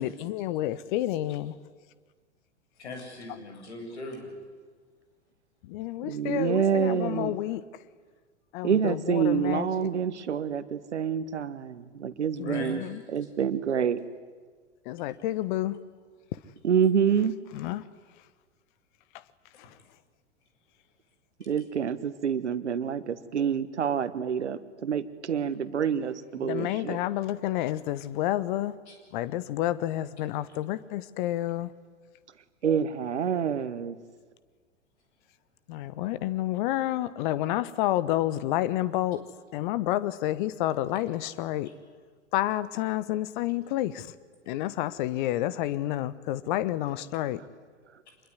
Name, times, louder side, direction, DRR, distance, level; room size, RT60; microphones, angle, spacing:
voice 1, 0.0-1.6 5.6-7.6 8.5-9.9 12.4-13.0 14.8-15.8 16.3-16.4 17.5-17.8 19.6-19.8 26.4-28.7 29.1-31.7 35.7-39.3 39.5-41.7 42.3-44.1 44.5-47.4, left 14 dB, 45° left, 1.2 m, -29 dB
voice 2, 2.8-4.3 12.4-12.7 21.4-21.5 28.9-29.0 30.5-30.6, left 2 dB, 65° left, 7.5 m, -40 dB
voice 3, 6.0-7.3 8.6-12.8 13.1-14.0 16.6-17.4 21.5-27.0 32.6-34.0, right 7 dB, 70° right, 1.5 m, -27 dB
26.0 x 21.5 x 9.7 m
figure-of-eight pair, 95°, 36 cm